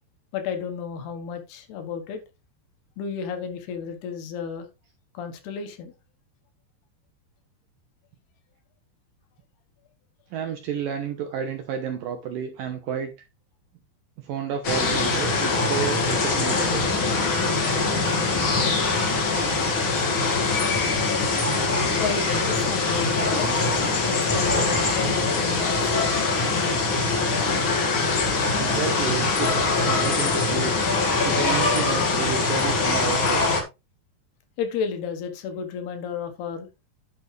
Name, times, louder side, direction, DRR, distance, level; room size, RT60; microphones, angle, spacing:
voice 1, 0.3-2.2 3.0-4.7 5.1-5.9 22.0-23.6 24.1-26.2 34.6-36.7, left 6 dB, 70° left, 3.2 m, -32 dB
voice 2, 10.3-13.1 14.2-16.9 28.6-30.7 31.2-33.5, right 7 dB, 70° right, 2.2 m, -31 dB
sound 1, 14.6-33.6, left 3 dB, 45° left, 1.6 m, -23 dB
11.0 x 6.8 x 3.3 m
omnidirectional pair, 5.1 m